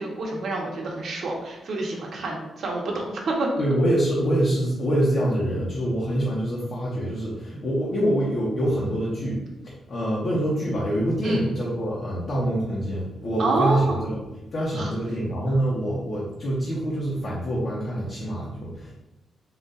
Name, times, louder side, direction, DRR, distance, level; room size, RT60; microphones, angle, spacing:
voice 1, 0.0-3.5 11.2-11.4 13.4-14.0 14.7-14.9, right 2 dB, 65° right, -1 dB, 0.9 m, -27 dB
voice 2, 3.6-14.2 14.5-18.9, right 1 dB, 45° left, -6 dB, 0.9 m, -25 dB
3.8 x 2.4 x 4.0 m, 1.0 s
cardioid pair, 105°, 0 cm